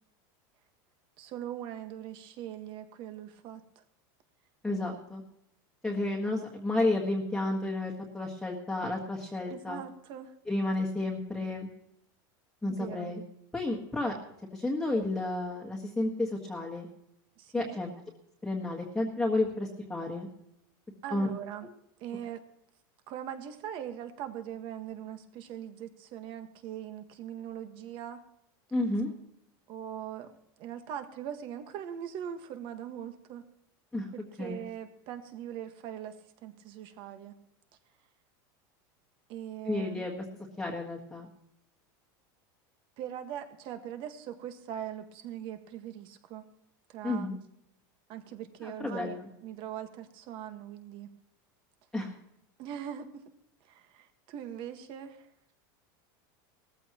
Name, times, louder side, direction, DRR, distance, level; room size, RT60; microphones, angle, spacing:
voice 1, 1.2-3.8 9.5-10.3 12.7-13.1 17.4-17.8 21.0-21.7 22.0-22.4 23.1-28.2 29.7-33.4 34.1-36.1 36.4-37.3 39.3-40.1 43.0-46.4 46.9-47.3 48.1-51.1 52.6-53.2 53.6-55.3, right 10 dB, 45° right, 8 dB, 1.6 m, -41 dB
voice 2, 4.6-5.2 5.8-9.8 10.5-11.7 12.6-13.2 13.5-14.1 14.5-16.9 17.5-17.9 18.4-20.3 21.1-21.3 28.7-29.1 33.9-34.1 34.4-34.6 39.6-40.2 40.6-41.3 47.0-47.4 48.6-49.2 51.9-52.1, left 2 dB, 5° left, -2 dB, 1.6 m, -31 dB
18.0 x 14.5 x 3.0 m, 0.80 s
supercardioid pair, 150°, 11 cm